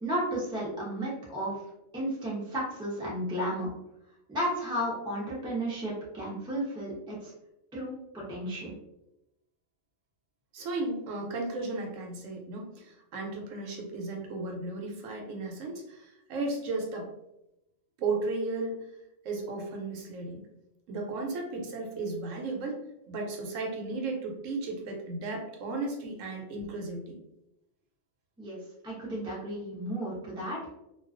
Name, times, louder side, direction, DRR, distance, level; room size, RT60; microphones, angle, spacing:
voice 1, 0.0-1.5 1.9-3.7 4.3-7.3 7.7-8.8 28.4-28.6 28.8-30.6, right 1 dB, 5° right, -5 dB, 0.4 m, -33 dB
voice 2, 10.5-17.1 18.0-18.8 19.2-20.4 20.9-22.8 23.1-27.2, right 3 dB, 85° right, 1 dB, 1.0 m, -35 dB
2.3 x 2.3 x 2.4 m, 0.88 s
omnidirectional pair, 1.3 m